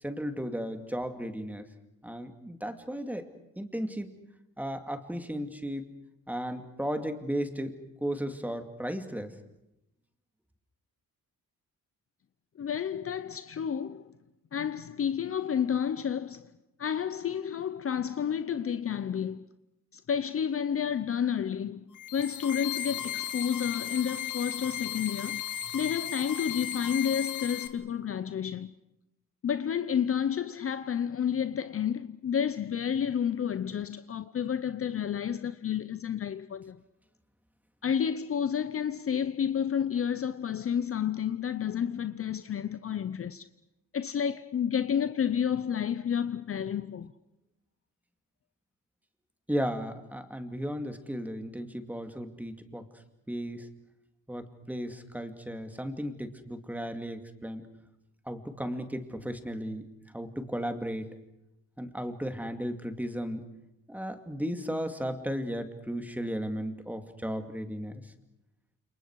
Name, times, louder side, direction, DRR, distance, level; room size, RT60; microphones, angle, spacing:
voice 1, 0.0-1.7 2.0-3.3 3.6-4.1 4.6-5.8 6.3-7.7 8.0-9.3 49.5-52.8 53.3-53.7 54.3-57.7 58.3-59.8 60.1-61.1 61.8-63.5 63.9-68.1, equal, 5° right, 2.4 m, -35 dB
voice 2, 12.6-14.1 14.5-16.5 16.8-19.5 19.9-21.8 22.1-25.4 25.7-28.7 29.4-36.8 37.8-43.5 43.9-47.1, left 8 dB, 40° left, 0.8 m, -30 dB
sound 1, 21.9-27.7, left 10 dB, 60° left, 2.5 m, -36 dB
29.5 x 28.5 x 4.8 m
cardioid pair, 140°, 34 cm